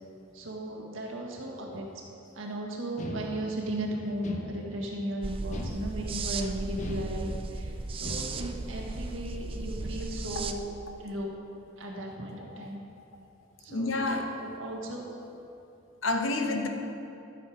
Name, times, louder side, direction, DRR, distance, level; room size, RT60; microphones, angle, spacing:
voice 1, 0.3-1.9 2.4-10.7 11.0-11.3 11.8-12.8 13.6-15.1, right 1 dB, 85° right, -1 dB, 1.7 m, -36 dB
sound 1, 3.0-3.7 4.2-5.0 5.5-6.3 6.8-7.6 8.0-8.6, left 1 dB, 40° left, 1.0 m, -39 dB
sound 2, 5.2-10.5, right 3 dB, 30° right, 0.4 m, -35 dB
voice 2, 13.7-14.4 16.0-16.7, left 2 dB, 80° left, 4 dB, 1.0 m, -29 dB
12.5 x 6.8 x 5.0 m, 2.7 s
head